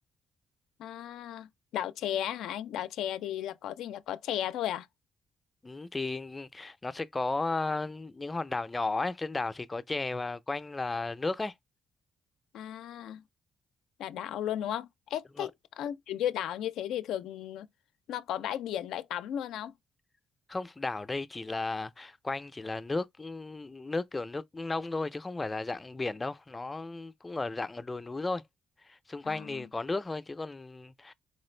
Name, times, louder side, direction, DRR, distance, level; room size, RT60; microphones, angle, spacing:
voice 1, 0.8-4.9 12.5-13.2 14.0-15.5 15.8-17.7 18.1-19.7 29.2-29.7, left 11 dB, 85° left, 0.4 m, -35 dB
voice 2, 5.6-11.5 15.4-15.5 20.5-28.4 28.8-31.1, left 3 dB, 20° left, 0.4 m, -34 dB
4.3 x 2.5 x 3.1 m
cardioid pair, 90°, 0 cm